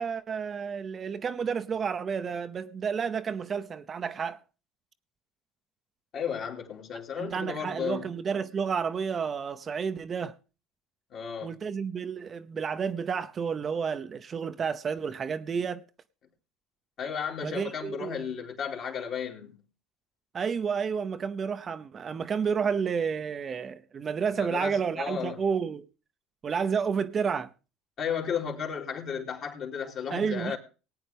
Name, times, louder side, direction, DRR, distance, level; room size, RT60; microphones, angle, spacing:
voice 1, 0.0-4.4 7.2-10.3 11.4-15.8 17.4-18.2 20.3-25.9 26.4-27.5 30.1-30.6, right 6 dB, 35° right, 0.8 m, -30 dB
voice 2, 6.1-8.1 11.1-11.6 17.0-19.6 24.4-25.4 28.0-30.6, left 7 dB, 55° left, 3.0 m, -34 dB
18.5 x 9.0 x 3.5 m
supercardioid pair, 85°, 0 cm